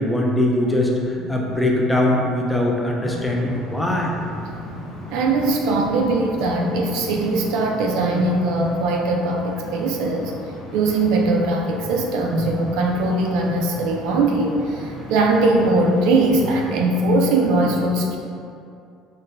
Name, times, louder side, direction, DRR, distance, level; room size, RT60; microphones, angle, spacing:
voice 1, 0.0-4.1, left 1 dB, 5° left, -2 dB, 0.3 m, -21 dB
sound 1, 3.0-17.2, left 1 dB, 55° left, 0.7 m, -38 dB
voice 2, 5.1-10.3 10.7-18.2, right 2 dB, 70° right, 1 dB, 0.3 m, -20 dB
3.9 x 2.1 x 2.5 m, 2.5 s
cardioid pair, 165°, 0 cm